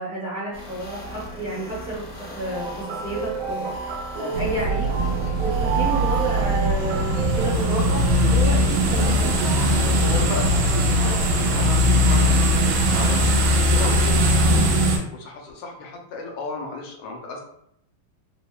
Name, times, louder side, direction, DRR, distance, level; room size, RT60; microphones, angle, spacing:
voice 1, 0.0-4.9 5.4-8.0 8.3-9.3 14.5-14.8, right 1 dB, 35° right, -8 dB, 0.7 m, -31 dB
sound 1, 0.5-13.5, equal, 60° left, 0.9 m, -38 dB
sound 2, 2.5-7.5, right 6 dB, 65° right, 0.9 m, -30 dB
sound 3, 4.3-15.0, equal, 80° right, 1.4 m, -20 dB
voice 2, 10.0-13.3 13.7-14.6 15.1-17.4, left 3 dB, 80° left, 1 dB, 1.4 m, -34 dB
3.5 x 2.0 x 2.2 m, 0.71 s
omnidirectional pair, 2.2 m